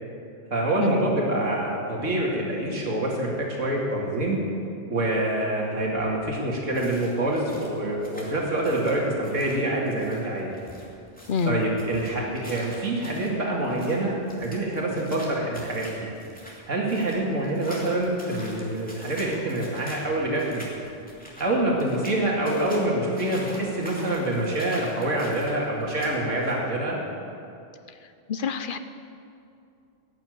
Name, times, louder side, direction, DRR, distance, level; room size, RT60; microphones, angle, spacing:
voice 1, 0.5-4.4 4.9-10.5 11.5-16.1 16.7-20.6 21.4-27.0, right 1 dB, 90° right, -2 dB, 2.6 m, -26 dB
sound 1, 6.6-26.6, equal, 5° left, 2.7 m, -45 dB
voice 2, 11.3-11.6 28.3-28.8, left 5 dB, 55° left, 10 dB, 0.7 m, -26 dB
17.5 x 6.9 x 9.2 m, 2.6 s
omnidirectional pair, 1.3 m